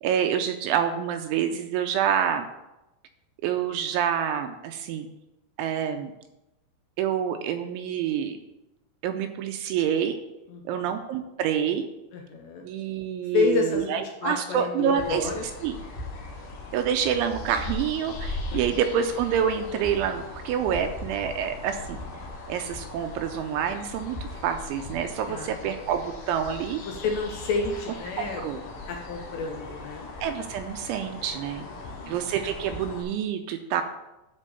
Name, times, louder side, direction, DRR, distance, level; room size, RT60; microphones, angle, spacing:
voice 1, 0.0-2.5 3.4-5.1 5.6-6.1 7.0-8.4 9.0-10.2 10.7-11.9 12.6-15.3 15.6-15.8 16.7-22.0 22.5-24.2 24.4-26.8 28.2-28.6 30.2-31.7 32.1-33.8, right 8 dB, 85° right, 7 dB, 2.8 m, -27 dB
voice 2, 12.1-12.7 13.3-15.4 18.5-18.6 25.3-25.5 26.9-28.4 28.9-30.1 31.6-32.2, left 4 dB, 75° left, 2 dB, 2.6 m, -29 dB
sound 1, 15.0-33.0, left 2 dB, 60° left, 2.4 m, -39 dB
11.0 x 4.6 x 6.8 m, 0.96 s
omnidirectional pair, 5.7 m